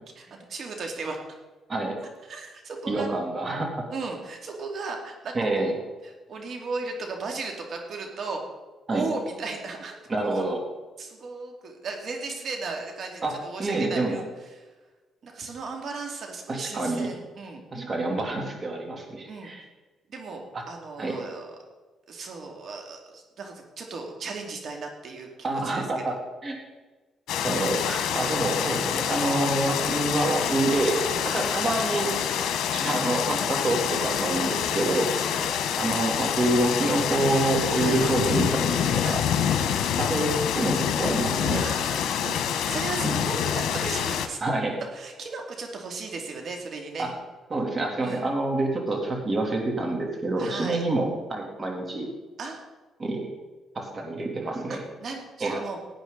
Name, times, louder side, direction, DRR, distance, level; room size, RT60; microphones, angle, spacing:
voice 1, 0.2-1.2 2.2-3.1 3.9-5.7 6.0-8.4 8.9-10.0 10.2-10.5 11.0-14.7 15.2-17.6 19.3-19.5 20.1-21.6 22.1-26.2 31.2-31.4 34.4-34.6 35.1-35.6 37.8-38.1 39.0-39.2 39.6-39.7 41.5-44.4 44.9-47.1 48.0-48.3 50.4-50.8 52.4-52.6 54.7-55.8, right 4 dB, 60° right, 2 dB, 2.6 m, -36 dB
voice 2, 2.9-3.9 5.3-5.7 8.9-9.1 10.1-10.6 13.2-13.3 13.6-14.2 16.5-17.1 17.7-19.6 20.5-20.6 21.0-21.2 25.4-26.1 26.4-26.6 27.4-32.1 32.7-35.1 35.8-39.2 40.0-41.6 43.0-43.2 44.4-44.7 47.0-47.1 47.5-52.1 53.0-53.3 53.7-54.8 55.4-55.5, right 2 dB, 35° right, 1 dB, 3.1 m, -27 dB
sound 1, 27.3-44.3, left 8 dB, 80° left, 1.1 m, -26 dB
17.0 x 9.0 x 4.1 m, 1.2 s
cardioid pair, 90°, 0 cm